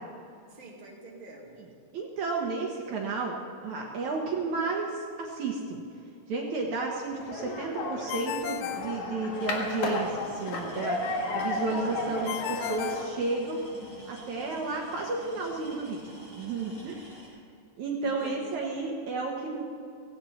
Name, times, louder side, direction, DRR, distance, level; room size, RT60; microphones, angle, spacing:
voice 1, 0.5-1.6 18.0-18.8, right 2 dB, 15° right, -3 dB, 2.0 m, -47 dB
voice 2, 1.9-3.4 3.6-5.8 6.3-11.0 11.3-13.6 14.1-16.0 16.4-17.1 17.8-19.6, right 3 dB, 60° right, -1 dB, 2.4 m, -32 dB
sound 1, 7.1-13.1, left 2 dB, 60° left, 2.9 m, -33 dB
Ringtone, 8.1-9.7 12.3-13.9, left 12 dB, 75° left, 2.3 m, -36 dB
sound 2, 9.3-17.3, equal, 25° left, 5.3 m, -48 dB
17.0 x 16.5 x 4.3 m, 2.5 s
omnidirectional pair, 4.2 m